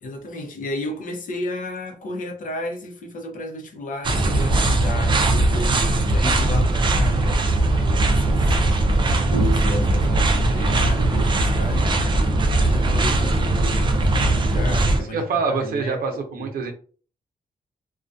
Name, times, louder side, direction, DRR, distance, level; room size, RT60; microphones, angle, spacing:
voice 1, 0.0-7.6 8.0-8.6 9.2-14.2 14.5-16.5, equal, 65° left, 0.6 m, -32 dB
sound 1, 4.0-15.0, right 2 dB, 30° right, 0.4 m, -20 dB
voice 2, 15.1-16.7, right 4 dB, 85° right, 0.6 m, -26 dB
2.3 x 2.2 x 2.5 m
wide cardioid pair, 135°, 15 cm